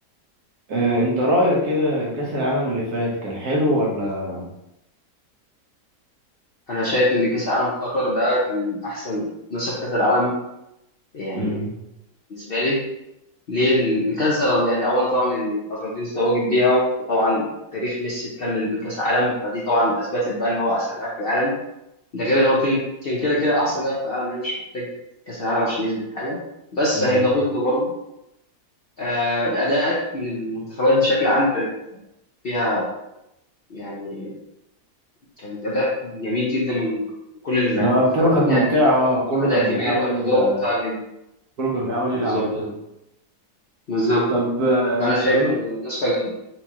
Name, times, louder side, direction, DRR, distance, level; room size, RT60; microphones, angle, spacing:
voice 1, 0.7-4.5 11.3-11.8 26.9-27.3 37.7-40.6 41.6-42.7 44.3-45.5, equal, 70° right, -3 dB, 1.4 m, -22 dB
voice 2, 6.7-10.3 11.1-11.6 12.3-12.8 13.5-16.8 17.1-17.5 17.7-21.5 22.1-24.9 25.3-26.4 26.7-27.9 29.0-31.7 32.4-32.9 33.7-34.3 35.4-37.1 37.4-37.9 38.2-38.6 39.4-41.0 42.1-42.5 43.9-44.3 45.0-46.3, left 1 dB, 55° left, -6 dB, 0.6 m, -22 dB
4.5 x 2.3 x 2.8 m, 0.87 s
omnidirectional pair, 1.7 m